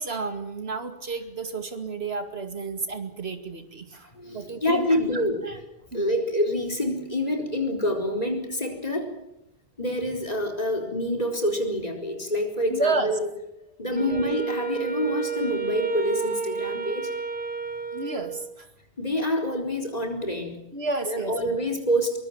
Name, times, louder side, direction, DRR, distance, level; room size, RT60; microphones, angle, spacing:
voice 1, 0.0-4.1 4.3-4.9 5.1-5.6 5.9-6.2 12.7-13.1 13.9-14.2 17.9-18.7 20.7-21.6, right 3 dB, 75° right, 7 dB, 2.6 m, -31 dB
voice 2, 4.2-5.4 5.9-9.1 9.8-13.3 13.8-17.1 19.0-20.6 21.1-22.2, left 1 dB, 40° left, 3 dB, 4.4 m, -27 dB
Wind instrument woodwind instrument, 13.9-18.6, right 6 dB, 55° right, 1.6 m, -31 dB
23.0 x 22.0 x 7.3 m, 0.88 s
omnidirectional pair, 1.1 m